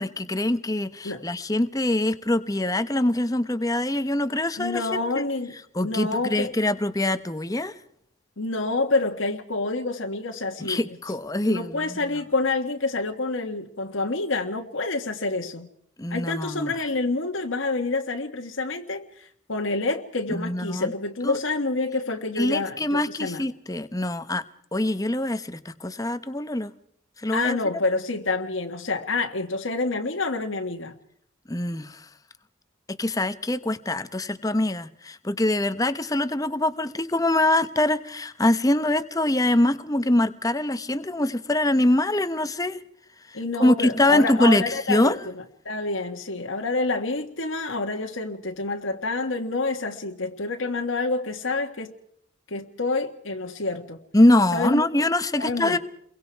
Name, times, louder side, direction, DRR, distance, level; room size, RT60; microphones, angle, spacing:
voice 1, 0.0-5.2 5.7-7.7 10.6-12.0 16.0-16.7 20.3-20.9 21.2-21.4 22.4-24.4 24.7-26.7 27.2-27.6 31.5-32.1 32.9-42.8 43.3-45.2 54.1-55.8, left 1 dB, 15° left, 0.9 m, -24 dB
voice 2, 4.6-5.5 5.8-6.5 8.4-10.8 11.5-15.7 16.1-23.4 27.3-30.9 43.3-45.3 45.6-51.9 52.5-54.0 54.5-54.9 55.4-55.8, left 3 dB, 80° left, 1.6 m, -28 dB
29.5 x 22.5 x 4.6 m
head